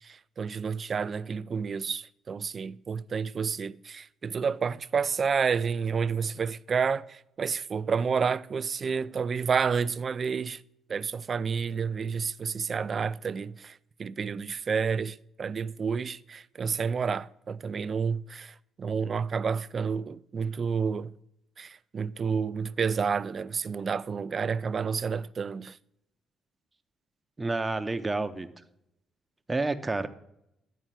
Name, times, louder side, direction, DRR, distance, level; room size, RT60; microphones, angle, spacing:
voice 1, 0.0-10.6 10.9-21.2 21.6-25.8, right 6 dB, 45° right, 0.3 m, -30 dB
voice 2, 27.4-28.5 29.5-30.1, right 3 dB, 20° right, 0.7 m, -29 dB
10.0 x 4.4 x 5.8 m
cardioid pair, 80°, 0 cm